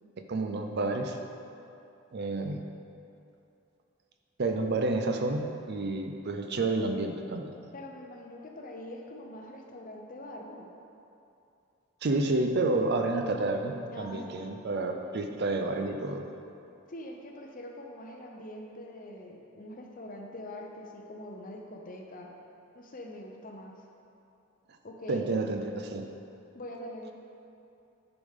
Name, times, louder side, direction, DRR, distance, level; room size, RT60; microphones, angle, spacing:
voice 1, 0.3-1.2 2.1-2.6 4.4-7.5 12.0-16.3 25.1-26.0, right 2 dB, 50° right, 5 dB, 0.5 m, -30 dB
voice 2, 7.7-10.7 13.9-14.6 16.9-22.3 22.7-23.8 24.8-25.5 26.5-27.1, left 1 dB, 40° left, 1 dB, 0.7 m, -43 dB
9.8 x 5.1 x 3.6 m, 2.7 s
head